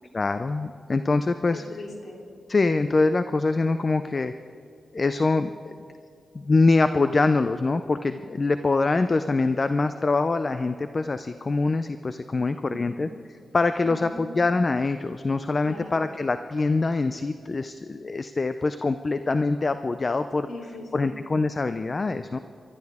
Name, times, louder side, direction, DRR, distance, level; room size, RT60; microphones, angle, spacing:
voice 1, 0.1-1.6 2.5-4.3 4.9-5.8 6.3-13.1 13.5-20.5 20.9-22.4, left 3 dB, 35° left, 10 dB, 0.4 m, -24 dB
voice 2, 1.5-2.2 12.7-13.0 13.8-14.4 15.6-16.0 20.5-21.1, left 2 dB, 70° left, -1 dB, 3.3 m, -40 dB
30.0 x 13.0 x 3.6 m, 2.4 s
cardioid pair, 95°, 0 cm